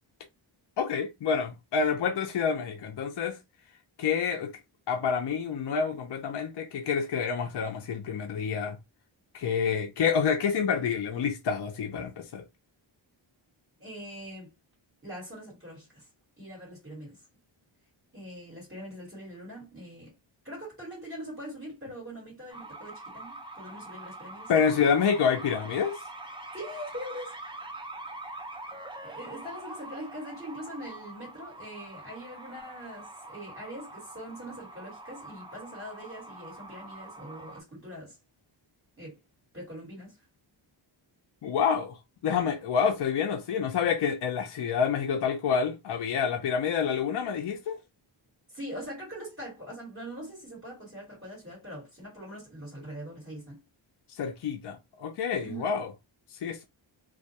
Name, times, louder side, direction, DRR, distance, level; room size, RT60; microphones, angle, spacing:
voice 1, 0.8-3.4 4.0-4.5 4.9-8.8 9.3-12.4 24.5-26.0 41.4-47.8 54.1-55.9 56.4-56.6, left 6 dB, 60° left, 0.5 m, -28 dB
voice 2, 13.8-14.5 15.0-16.1 16.4-17.2 18.1-20.1 20.4-24.5 26.5-27.3 29.0-38.2 39.0-39.2 39.5-40.2 48.5-53.6 55.4-55.7, equal, 25° right, 1.4 m, -42 dB
sound 1, 22.5-37.6, right 2 dB, 10° right, 0.5 m, -44 dB
2.3 x 2.2 x 2.8 m
wide cardioid pair, 135°, 48 cm